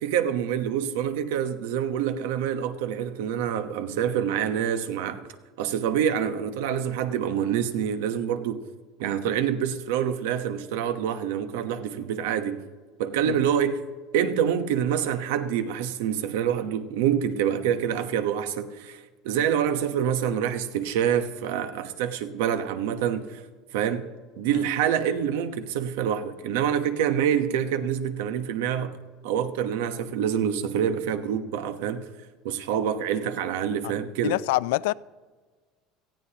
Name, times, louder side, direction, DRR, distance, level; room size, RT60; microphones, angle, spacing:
voice 1, 0.0-5.2 5.6-8.6 9.0-12.6 13.0-13.8 14.1-23.4 23.7-24.1 24.4-29.0 29.2-32.1 32.4-34.4, right 9 dB, 85° right, 1.0 m, -26 dB
voice 2, 34.2-34.9, left 19 dB, 80° left, 0.3 m, -26 dB
18.0 x 14.5 x 2.9 m
cardioid pair, 175°, 0 cm